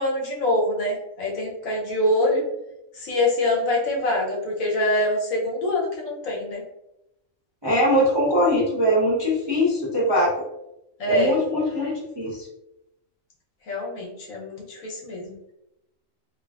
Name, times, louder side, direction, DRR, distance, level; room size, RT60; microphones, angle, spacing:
voice 1, 0.0-2.4 2.9-6.6 11.0-11.4 13.7-15.4, left 1 dB, 75° left, -2 dB, 1.2 m, -24 dB
voice 2, 7.6-10.3 11.0-12.5, equal, 30° right, -7 dB, 0.5 m, -21 dB
3.0 x 2.4 x 2.3 m, 0.88 s
omnidirectional pair, 1.4 m